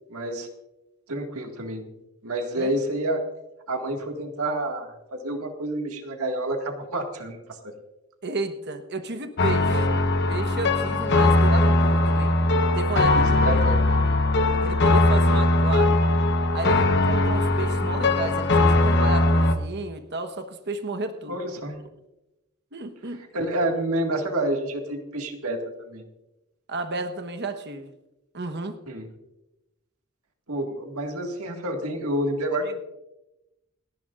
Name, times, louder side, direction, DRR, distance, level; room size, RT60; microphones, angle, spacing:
voice 1, 0.1-0.5 1.1-1.9 2.2-3.2 3.7-7.4 9.7-9.9 13.2-13.8 21.3-21.8 23.1-26.0 28.9-29.1 30.5-32.8, right 1 dB, 75° right, 3 dB, 2.0 m, -29 dB
voice 2, 8.2-9.9 10.3-12.3 12.7-13.6 14.0-14.1 14.6-16.0 16.5-21.3 22.7-23.2 26.7-27.9 28.3-28.8 32.7-32.8, right 2 dB, 50° right, 7 dB, 1.2 m, -32 dB
sound 1, 9.4-19.5, left 2 dB, 50° left, 1.1 m, -20 dB
28.5 x 10.5 x 2.5 m, 0.95 s
head